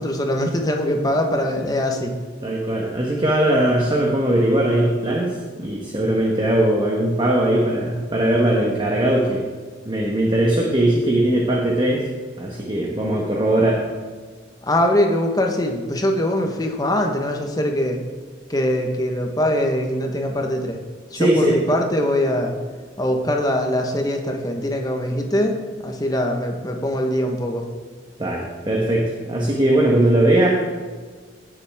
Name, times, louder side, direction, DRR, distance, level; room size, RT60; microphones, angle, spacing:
voice 1, 0.0-2.1 14.6-18.0 18.5-20.8 21.1-22.6 23.0-27.6, left 1 dB, 20° left, 3 dB, 1.2 m, -22 dB
voice 2, 2.4-9.5 9.8-12.1 12.4-13.8 21.1-21.6 28.2-30.5, right 1 dB, 25° right, -2 dB, 1.2 m, -20 dB
17.0 x 7.4 x 3.6 m, 1.5 s
head